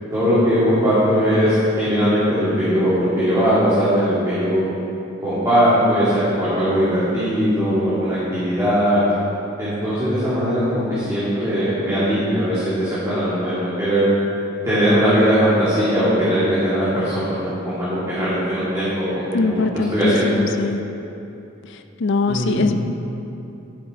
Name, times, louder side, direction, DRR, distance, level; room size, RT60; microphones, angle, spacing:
voice 1, 0.1-4.6 5.2-9.0 9.6-14.1 14.6-20.4 22.3-22.7, equal, 15° right, -13 dB, 2.5 m, -19 dB
voice 2, 19.3-20.8 22.0-22.7, left 3 dB, 60° left, 7 dB, 0.5 m, -21 dB
12.0 x 8.2 x 4.0 m, 2.8 s
head